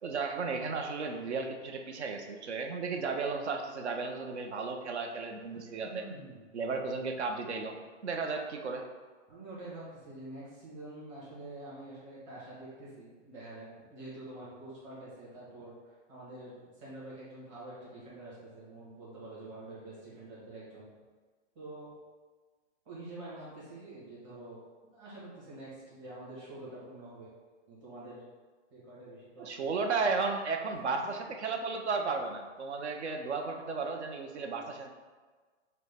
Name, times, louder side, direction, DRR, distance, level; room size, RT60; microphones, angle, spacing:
voice 1, 0.0-6.0 6.5-8.9 29.4-34.9, right 4 dB, 65° right, 4 dB, 0.7 m, -34 dB
voice 2, 5.8-6.4 9.3-20.9 21.5-21.9 22.8-24.6 24.9-27.3 27.7-28.2 28.7-29.7 32.8-32.9, right 2 dB, 25° right, -8 dB, 1.4 m, -47 dB
5.9 x 2.2 x 3.5 m, 1.4 s
hypercardioid pair, 170°, 36 cm